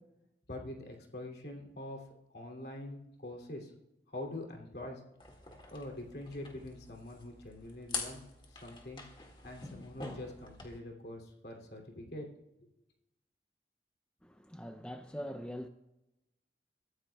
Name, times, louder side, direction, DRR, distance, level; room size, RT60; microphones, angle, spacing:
voice 1, 0.5-2.0 2.3-3.7 4.1-5.0 5.7-8.2 8.5-9.0 9.4-12.3, left 1 dB, 60° left, 2.8 m, -44 dB
sound 1, 5.2-10.8, left 4 dB, 25° left, 1.9 m, -45 dB
voice 2, 14.2-15.7, equal, 5° left, 0.5 m, -42 dB
23.5 x 14.5 x 2.3 m
head